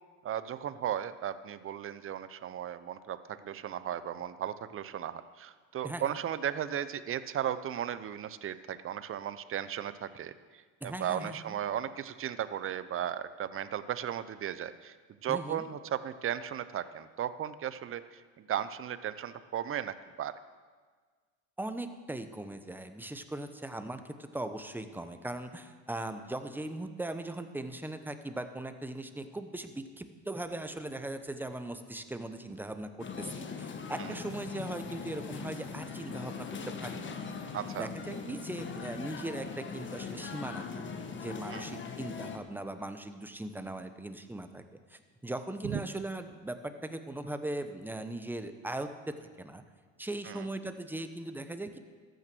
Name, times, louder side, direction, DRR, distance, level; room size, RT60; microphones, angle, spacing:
voice 1, 0.2-15.0 15.2-20.3 34.0-34.1 37.5-37.9 41.5-41.6 45.6-45.8 50.3-50.5, right 10 dB, 30° right, 14 dB, 0.7 m, -36 dB
voice 2, 10.8-11.6 15.3-15.7 21.6-36.5 36.8-37.0 37.8-40.8 41.2-44.6 44.9-49.6 50.0-51.8, right 1 dB, 5° right, 8 dB, 1.0 m, -39 dB
sound 1, 33.0-42.4, left 5 dB, 30° left, 1.3 m, -40 dB
14.0 x 9.4 x 6.2 m, 1.5 s
hypercardioid pair, 90°, 41 cm